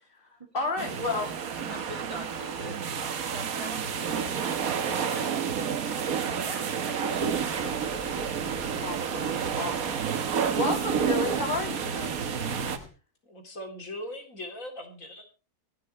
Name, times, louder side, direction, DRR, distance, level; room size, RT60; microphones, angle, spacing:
voice 1, 0.5-1.3 1.6-1.7 8.8-9.3 9.6-10.0 10.6-12.2, left 3 dB, 35° left, 1 dB, 3.5 m, -31 dB
sound 1, 0.8-12.8, right 7 dB, 65° right, 1.6 m, -30 dB
voice 2, 1.7-5.8 6.3-7.9, equal, 20° right, 6 dB, 2.4 m, -44 dB
sound 2, 7.2-12.9, left 2 dB, 75° left, 4.2 m, -46 dB
voice 3, 13.2-15.3, left 1 dB, 55° left, 4 dB, 3.6 m, -40 dB
25.0 x 8.6 x 3.2 m, 0.33 s
omnidirectional pair, 1.6 m